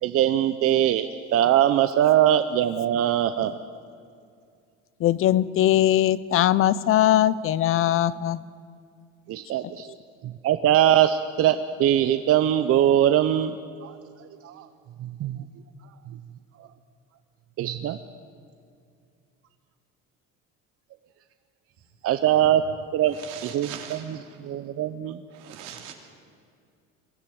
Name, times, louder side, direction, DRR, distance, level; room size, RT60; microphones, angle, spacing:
voice 1, 0.0-3.6 9.3-9.9 10.2-14.0 14.4-14.7 15.0-15.4 17.6-18.0 22.0-22.6 22.9-23.2 23.4-24.2 24.4-25.2, right 11 dB, 50° right, 10 dB, 0.7 m, -22 dB
voice 2, 5.0-8.4, left 12 dB, 50° left, 18 dB, 0.6 m, -20 dB
voice 3, 23.2-24.2 25.3-25.9, right 9 dB, 80° right, 3 dB, 3.1 m, -40 dB
22.0 x 13.5 x 9.4 m, 2.3 s
cardioid pair, 125°, 29 cm